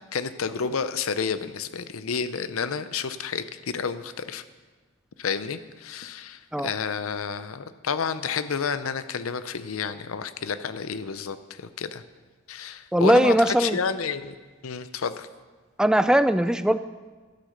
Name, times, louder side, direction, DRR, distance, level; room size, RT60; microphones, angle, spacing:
voice 1, 0.1-4.4 5.2-12.0 12.5-14.3 14.6-15.3, left 6 dB, 90° left, 13 dB, 0.6 m, -30 dB
voice 2, 12.9-13.8 15.8-16.8, right 1 dB, 5° right, 12 dB, 0.3 m, -19 dB
11.5 x 9.5 x 6.5 m, 1.4 s
head